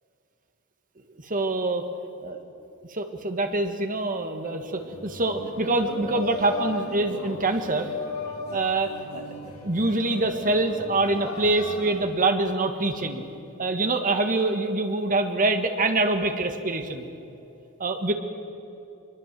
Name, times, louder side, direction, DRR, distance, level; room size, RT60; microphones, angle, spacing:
voice 1, 1.2-1.8 2.2-2.4 2.9-7.9 8.5-13.2 13.6-17.1 17.8-18.1, right 2 dB, 40° right, 6 dB, 1.8 m, -25 dB
sound 1, 4.7-12.0, left 2 dB, 80° left, 4.0 m, -36 dB
24.0 x 22.0 x 7.7 m, 2.8 s
head